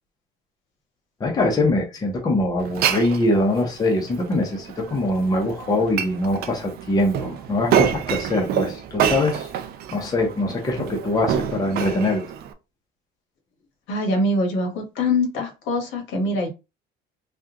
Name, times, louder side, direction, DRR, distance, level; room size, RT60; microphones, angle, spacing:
voice 1, 1.2-9.5 9.9-12.2, left 1 dB, 20° left, 0.7 m, -23 dB
Glass, 2.6-12.5, right 9 dB, 50° right, 0.4 m, -27 dB
voice 2, 13.9-16.5, left 1 dB, 70° left, 1.3 m, -23 dB
3.6 x 2.3 x 2.8 m
cardioid pair, 160°, 20 cm